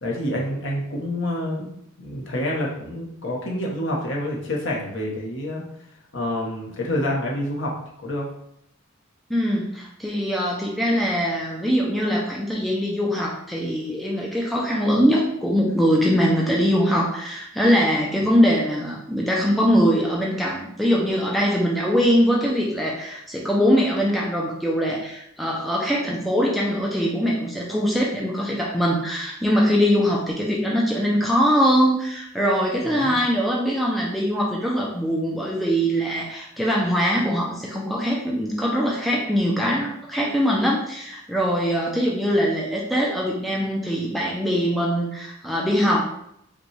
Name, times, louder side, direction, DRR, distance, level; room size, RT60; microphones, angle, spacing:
voice 1, 0.0-5.6 6.1-7.7 8.0-8.3 32.9-33.2, left 1 dB, 60° left, -2 dB, 0.9 m, -27 dB
voice 2, 9.3-46.0, equal, ahead, -4 dB, 0.4 m, -22 dB
5.0 x 2.3 x 3.2 m, 0.74 s
head